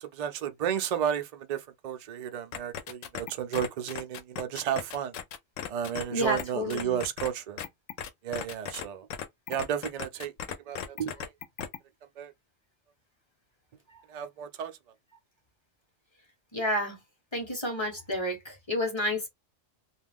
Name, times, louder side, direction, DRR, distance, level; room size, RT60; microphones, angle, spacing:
voice 1, 0.0-5.1 5.7-7.6 8.2-9.1 9.5-10.3 10.7-11.3 12.2-12.3 14.1-14.7, right 9 dB, 75° right, 0.3 m, -32 dB
sound 1, 2.5-6.0 6.4-6.5 6.7-7.3 7.6-8.9 9.1-11.8, left 9 dB, 80° left, 0.9 m, -36 dB
voice 2, 6.1-7.0 16.5-17.0 17.3-19.3, equal, 25° left, 0.8 m, -30 dB
2.4 x 2.3 x 3.4 m
omnidirectional pair, 1.3 m